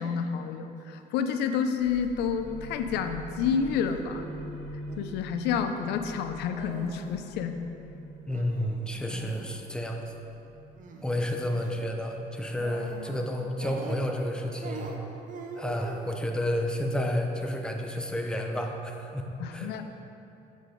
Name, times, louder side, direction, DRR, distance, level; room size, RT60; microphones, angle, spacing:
voice 1, 0.0-4.2 5.0-7.6 19.4-19.8, left 7 dB, 85° left, 7 dB, 0.4 m, -29 dB
sound 1, 1.8-2.1 2.4-2.9 3.5-4.0 4.9-5.3 6.5-7.2 7.5-7.6 8.3-9.5 10.8-11.1 11.5-11.7 12.6-13.2 13.6-14.3 14.6-16.1 16.7-17.1, right 4 dB, 50° right, 0.7 m, -43 dB
sound 2, 1.8-13.2, right 1 dB, 80° right, 1.4 m, -44 dB
voice 2, 8.3-10.1 11.0-15.0 15.6-19.8, left 1 dB, 5° left, 2 dB, 0.6 m, -31 dB
7.4 x 4.9 x 3.8 m, 2.8 s
cardioid pair, 110°, 17 cm